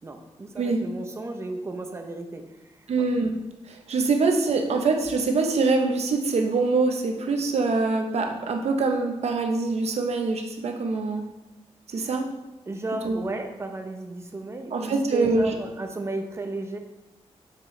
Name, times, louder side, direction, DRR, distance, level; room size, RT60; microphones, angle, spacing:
voice 1, 0.0-3.1 11.9-12.1 12.7-16.8, right 2 dB, 25° right, 4 dB, 0.7 m, -34 dB
voice 2, 2.9-3.4 3.7-11.2 11.9-12.3 13.0-13.2 14.7-15.5, right 3 dB, 75° right, 4 dB, 0.8 m, -24 dB
6.8 x 6.3 x 3.2 m, 1.0 s
wide cardioid pair, 175°, 11 cm